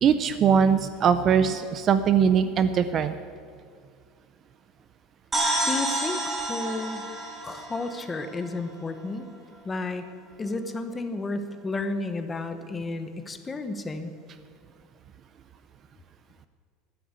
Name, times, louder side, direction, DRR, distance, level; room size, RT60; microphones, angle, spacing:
voice 1, 0.0-3.1, right 7 dB, 25° right, 12 dB, 0.4 m, -21 dB
sound 1, 5.3-9.0, right 2 dB, 10° right, 2.0 m, -29 dB
voice 2, 5.7-7.1 7.4-9.3 9.6-10.0 10.4-14.1, left 3 dB, 15° left, 8 dB, 0.9 m, -32 dB
12.0 x 10.0 x 9.6 m, 2.2 s
supercardioid pair, 170°, 0 cm